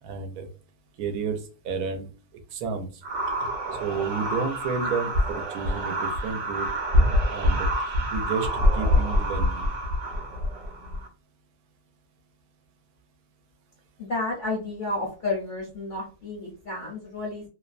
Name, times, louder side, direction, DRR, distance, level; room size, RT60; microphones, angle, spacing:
voice 1, 0.0-0.5 1.0-3.0 3.8-6.7 7.3-7.7 8.1-9.7, right 5 dB, 90° right, 6 dB, 1.1 m, -31 dB
sound 1, 3.0-11.1, left 1 dB, 65° right, 0.9 m, -25 dB
voice 2, 14.0-17.4, left 2 dB, 50° left, -3 dB, 0.6 m, -31 dB
2.7 x 2.1 x 2.4 m, 0.35 s
omnidirectional pair, 1.5 m